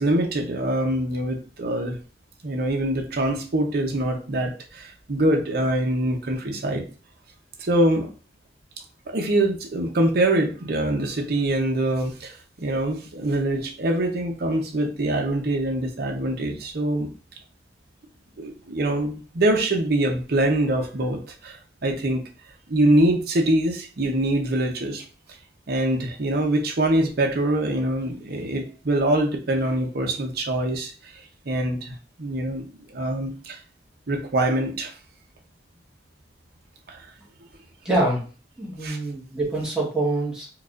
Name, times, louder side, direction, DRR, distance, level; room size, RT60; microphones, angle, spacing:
voice 1, 0.0-2.0 2.4-6.9 7.6-8.1 9.1-17.1 18.4-22.2 22.7-25.0 25.7-33.6 34.1-34.9 36.9-37.1 38.8-39.0, right 1 dB, 60° right, 2 dB, 0.7 m, -24 dB
voice 2, 37.8-38.2 38.6-40.5, right 2 dB, 5° right, -6 dB, 1.3 m, -25 dB
4.7 x 2.4 x 2.4 m, 0.37 s
head